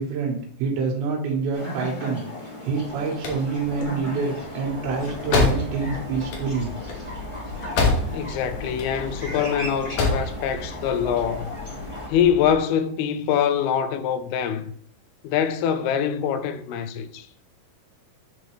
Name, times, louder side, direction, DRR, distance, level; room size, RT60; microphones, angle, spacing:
voice 1, 0.0-2.2 2.6-6.7, right 4 dB, 80° right, 3.3 m, -26 dB
sound 1, 1.5-12.1, left 1 dB, 15° left, 1.1 m, -36 dB
sound 2, 3.0-8.4 8.6-9.4 9.8-10.3, left 3 dB, 65° left, 2.5 m, -25 dB
sound 3, 4.6-12.6, left 3 dB, 50° left, 3.1 m, -38 dB
voice 2, 8.1-11.5 12.1-14.6 15.2-17.3, left 8 dB, 85° left, 2.5 m, -24 dB
10.5 x 4.0 x 3.1 m
omnidirectional pair, 4.5 m